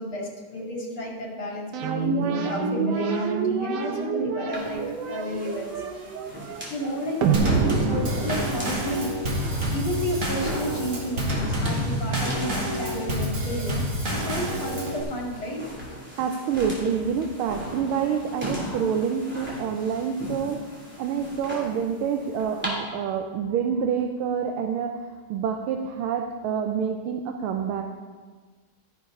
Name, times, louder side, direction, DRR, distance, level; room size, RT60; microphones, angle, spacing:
voice 1, 0.0-5.9 6.7-9.2 9.7-13.9 14.1-15.6 16.0-16.1, equal, 75° left, -2 dB, 3.1 m, -32 dB
sound 1, 1.7-9.2, right 5 dB, 65° right, 1.2 m, -27 dB
sound 2, 4.5-22.7, equal, 5° right, 2.7 m, -38 dB
Drum kit / Snare drum / Bass drum, 7.3-15.0, equal, 40° right, 2.1 m, -28 dB
voice 2, 16.2-20.7 21.0-27.8, right 7 dB, 90° right, 4 dB, 1.5 m, -27 dB
12.5 x 10.0 x 3.8 m, 1.4 s
omnidirectional pair, 2.3 m